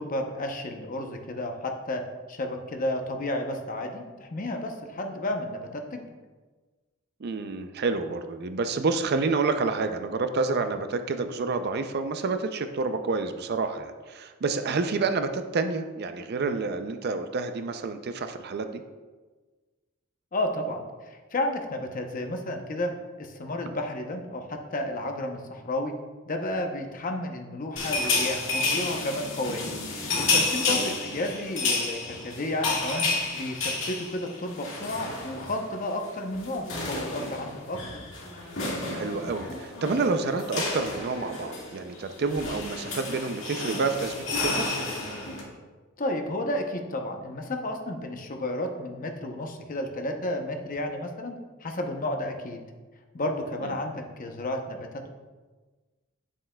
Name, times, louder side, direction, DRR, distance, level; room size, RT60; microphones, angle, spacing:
voice 1, 0.0-2.0 2.3-6.0 20.3-25.9 26.3-29.7 30.2-33.1 33.3-37.8 46.0-52.6 53.1-55.1, left 1 dB, 40° left, 4 dB, 0.8 m, -32 dB
voice 2, 7.2-18.8 30.7-31.0 38.9-44.7 53.6-53.7, right 4 dB, 50° right, 8 dB, 0.5 m, -29 dB
sound 1, 27.8-35.6 35.9-36.1 36.3-45.4, left 3 dB, 65° left, 1.9 m, -30 dB
8.7 x 7.4 x 2.3 m, 1.3 s
head